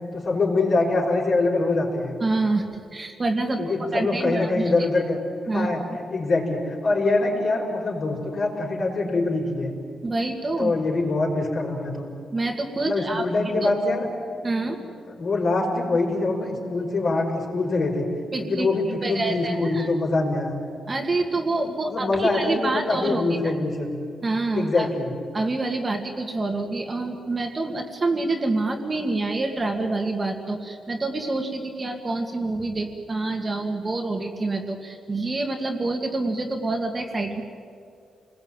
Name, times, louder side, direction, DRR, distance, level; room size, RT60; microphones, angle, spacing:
voice 1, 0.1-2.2 3.6-5.2 5.5-5.8 6.1-9.7 10.6-12.1 12.8-14.1 14.7-14.8 15.1-18.1 18.4-20.6 21.9-23.9 24.5-25.1, left 3 dB, 45° left, 0 dB, 5.3 m, -24 dB
voice 2, 2.2-2.6 2.9-3.6 3.9-4.7 5.5-5.7 10.0-10.7 12.3-13.2 13.6-13.7 14.4-14.8 18.3-18.7 19.0-19.9 20.9-23.2 24.2-24.9 25.3-37.4, right 2 dB, 25° right, 3 dB, 2.1 m, -27 dB
28.5 x 20.0 x 9.0 m, 2.4 s
wide cardioid pair, 150°, 0 cm